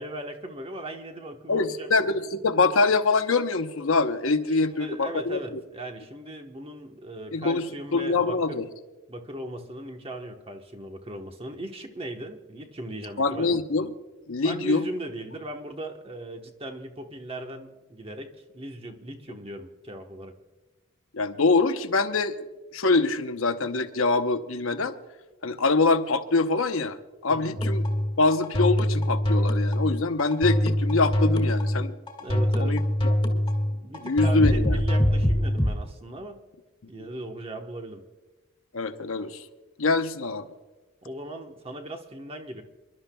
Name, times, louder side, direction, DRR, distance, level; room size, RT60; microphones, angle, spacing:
voice 1, 0.0-1.9 4.5-8.6 9.1-13.6 14.4-20.3 27.3-27.6 32.2-32.8 33.8-36.4 36.9-38.0 41.0-42.6, right 1 dB, 30° right, 4 dB, 1.1 m, -38 dB
voice 2, 1.5-5.4 7.3-8.7 13.2-13.9 14.3-14.8 21.1-22.3 22.7-24.9 25.4-27.0 27.2-27.8 28.2-32.0 32.6-32.8 33.3-33.4 34.0-34.8 37.0-37.1 38.7-39.4 39.8-40.5, left 3 dB, 80° left, 8 dB, 0.9 m, -24 dB
sound 1, 27.6-35.8, equal, 25° left, 1.8 m, -24 dB
28.5 x 12.0 x 2.3 m, 1.2 s
head